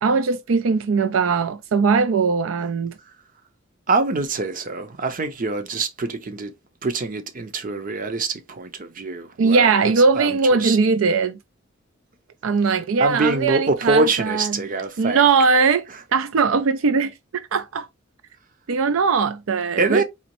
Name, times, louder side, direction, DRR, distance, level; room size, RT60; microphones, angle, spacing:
voice 1, 0.0-2.9 9.4-11.4 12.4-14.6 15.0-15.8 16.1-17.1 17.5-17.9 18.7-20.0, right 4 dB, 80° right, 0.4 m, -20 dB
voice 2, 3.9-6.5 6.8-9.8 10.2-10.8 13.0-15.2 19.8-20.0, right 3 dB, 45° right, 0.7 m, -24 dB
4.2 x 2.9 x 3.0 m
head